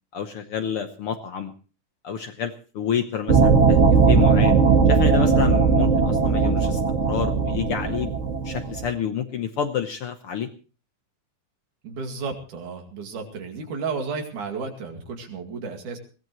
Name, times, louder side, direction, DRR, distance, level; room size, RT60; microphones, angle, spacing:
voice 1, 0.1-1.5 2.0-3.8 4.1-4.6 4.9-6.8 7.1-8.1 8.4-10.5, left 7 dB, 65° left, 7 dB, 1.5 m, -28 dB
sound 1, 3.3-8.9, right 5 dB, 35° right, 1.1 m, -18 dB
voice 2, 11.8-16.0, right 4 dB, 80° right, 4 dB, 3.7 m, -32 dB
21.5 x 17.5 x 3.1 m, 0.36 s
omnidirectional pair, 3.5 m